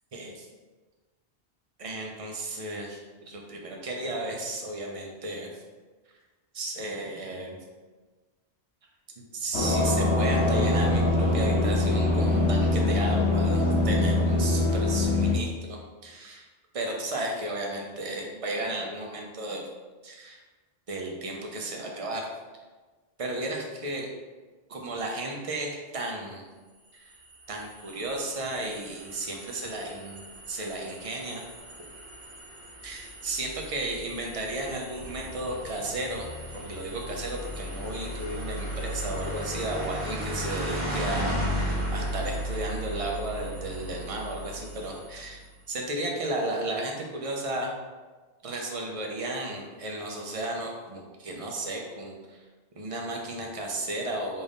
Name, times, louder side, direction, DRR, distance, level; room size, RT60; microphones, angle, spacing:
voice 1, 0.1-0.5 1.8-5.6 6.5-7.6 9.2-16.4 16.7-19.6 20.0-20.4 20.9-22.3 23.2-24.1 24.7-26.4 26.9-27.1 27.5-31.4 32.8-36.3 36.5-45.4 45.7-47.7 48.4-52.4 52.8-54.4, right 1 dB, 40° right, 0 dB, 0.5 m, -34 dB
sound 1, 9.5-15.3, left 2 dB, 85° left, 0.9 m, -23 dB
sound 2, 26.9-45.4, equal, 70° right, 1.3 m, -36 dB
3.8 x 2.6 x 3.4 m, 1.3 s
omnidirectional pair, 1.1 m